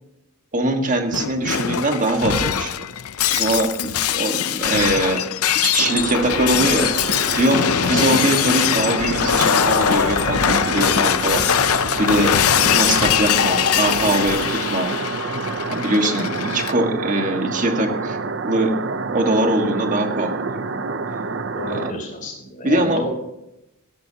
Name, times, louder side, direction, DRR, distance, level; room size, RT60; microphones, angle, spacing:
voice 1, 0.5-2.8 3.3-5.2 5.5-6.9 7.3-14.9 15.7-18.7 19.1-20.6 21.7-21.9 22.6-23.0, right 1 dB, 35° right, 4 dB, 1.7 m, -22 dB
Shatter, 1.1-16.7, left 9 dB, 85° left, 0.6 m, -21 dB
sound 1, 5.8-21.9, right 4 dB, 55° right, 0.7 m, -28 dB
voice 2, 7.9-8.2 16.3-16.5 21.5-23.1, equal, 35° left, 0 dB, 4.5 m, -30 dB
17.0 x 13.5 x 2.9 m, 0.89 s
head